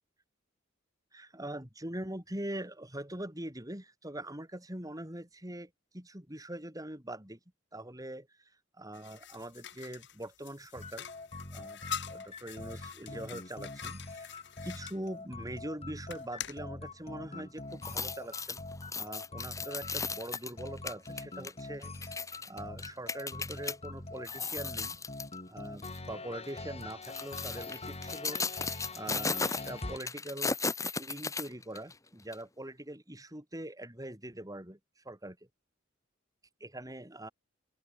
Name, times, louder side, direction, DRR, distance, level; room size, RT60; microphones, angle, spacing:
voice 1, 1.1-7.4 7.7-8.3 8.8-11.1 11.5-11.8 12.1-18.6 19.0-25.0 25.5-30.6 31.0-35.4 36.6-37.3, right 1 dB, 20° right, 6.1 m, -43 dB
sound 1, 8.9-15.0 16.1-16.6, left 8 dB, 60° left, 3.7 m, -44 dB
sound 2, 10.7-30.0, left 2 dB, 30° left, 2.4 m, -44 dB
sound 3, 17.7-23.8 24.2-25.3 25.8-26.0 26.8-31.9 32.3-32.4, left 4 dB, 15° left, 1.4 m, -36 dB
open air
head